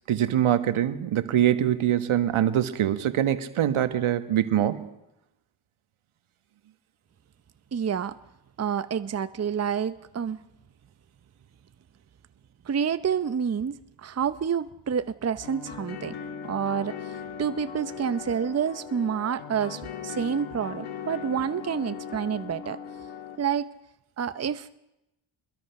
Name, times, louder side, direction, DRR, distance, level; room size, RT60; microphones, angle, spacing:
voice 1, 0.1-4.9, right 11 dB, 75° right, 10 dB, 1.6 m, -24 dB
voice 2, 7.7-8.2 8.6-10.4 12.7-16.1 16.4-22.8 23.4-23.7 24.2-24.8, right 7 dB, 30° right, 12 dB, 0.8 m, -28 dB
sound 1, 15.4-23.4, left 7 dB, 80° left, 2.9 m, -39 dB
26.5 x 21.5 x 5.9 m, 0.90 s
cardioid pair, 80°, 49 cm